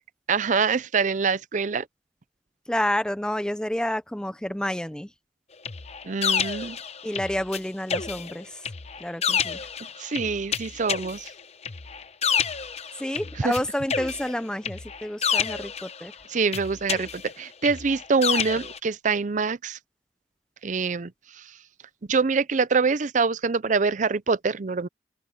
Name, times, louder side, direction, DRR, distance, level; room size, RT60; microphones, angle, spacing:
voice 1, 0.3-1.9 6.0-6.8 10.0-11.3 13.4-13.6 16.3-19.8 20.6-21.5 22.1-24.9, right 4 dB, 45° right, 0.5 m, -25 dB
voice 2, 2.7-5.1 7.0-8.6 9.0-9.6 13.0-16.1, left 1 dB, 5° left, 0.5 m, -29 dB
sound 1, 5.6-7.6 7.9-13.6 13.9-16.1 16.5-18.8, left 7 dB, 35° left, 0.8 m, -29 dB
open air
head